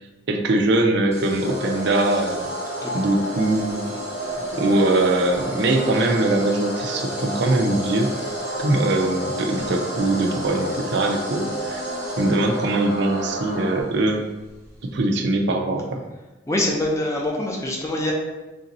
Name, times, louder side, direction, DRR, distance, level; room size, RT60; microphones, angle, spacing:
voice 1, 0.3-2.5 2.9-3.8 4.5-8.1 8.6-11.8 12.2-14.3 14.9-16.0, right 2 dB, 65° right, 3 dB, 0.5 m, -22 dB
sound 1, 1.1-15.0, right 1 dB, 15° right, 0.8 m, -41 dB
sound 2, 1.4-13.8, equal, 80° left, 0.7 m, -31 dB
sound 3, 2.2-13.8, right 1 dB, 80° right, 0.9 m, -42 dB
voice 2, 16.5-18.1, left 1 dB, 15° left, -1 dB, 0.6 m, -24 dB
3.4 x 2.6 x 4.0 m, 1.1 s
head